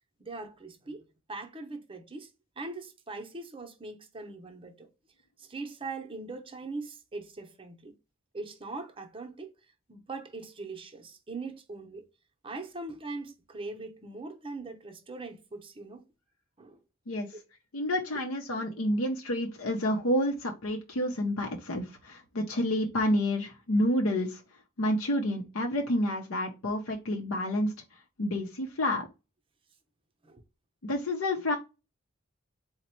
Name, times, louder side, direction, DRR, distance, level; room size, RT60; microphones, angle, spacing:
voice 1, 0.2-2.3 2.6-4.9 5.4-7.9 8.3-9.5 9.9-12.0 12.4-16.0 16.6-16.8 18.8-18.9 30.2-30.4, right 3 dB, 25° right, 0.7 m, -41 dB
voice 2, 17.1-17.4 17.7-29.1 30.8-31.6, left 1 dB, 80° left, 0.7 m, -29 dB
4.0 x 2.1 x 4.3 m
head